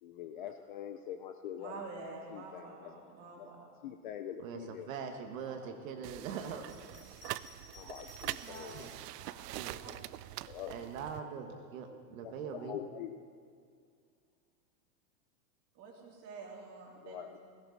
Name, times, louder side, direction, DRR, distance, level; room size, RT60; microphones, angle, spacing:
voice 1, 0.0-3.5 3.8-4.9 7.7-8.8 9.9-10.0 10.5-10.8 12.2-13.2 17.0-17.4, left 9 dB, 35° left, 7 dB, 0.4 m, -45 dB
voice 2, 1.6-3.7 5.6-5.7 8.4-8.8 9.2-9.9 15.7-17.4, right 3 dB, 35° right, -1 dB, 2.8 m, -48 dB
voice 3, 4.4-6.7 8.7-8.9 9.5-9.8 10.7-12.8, right 6 dB, 55° right, 4 dB, 1.4 m, -42 dB
sound 1, 6.0-11.2, right 16 dB, 85° right, 0.6 m, -44 dB
Bell, 6.6-9.0 9.8-10.7, left 1 dB, 20° left, 2.3 m, -56 dB
17.0 x 16.5 x 4.0 m, 2.2 s
supercardioid pair, 165°, 46 cm